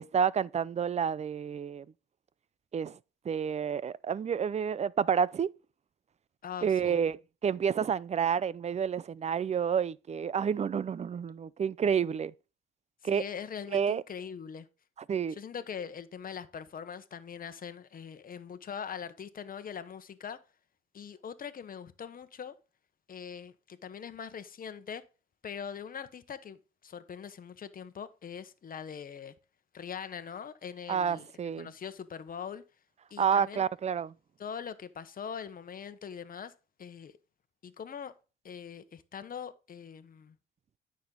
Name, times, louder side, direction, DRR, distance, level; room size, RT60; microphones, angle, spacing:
voice 1, 0.0-1.8 2.7-3.0 3.2-5.5 6.6-12.3 13.0-13.2 13.7-14.0 15.1-15.4 30.9-31.7 33.2-34.1, right 7 dB, 35° right, 0.5 m, -29 dB
voice 2, 6.4-7.0 13.0-14.7 15.3-20.4 20.9-22.5 23.1-25.0 25.4-29.3 29.7-32.6 33.1-33.7 34.4-36.5 36.8-37.1 37.6-38.1 38.4-40.3, left 7 dB, 45° left, 1.1 m, -42 dB
9.5 x 6.4 x 3.9 m
cardioid pair, 90°, 20 cm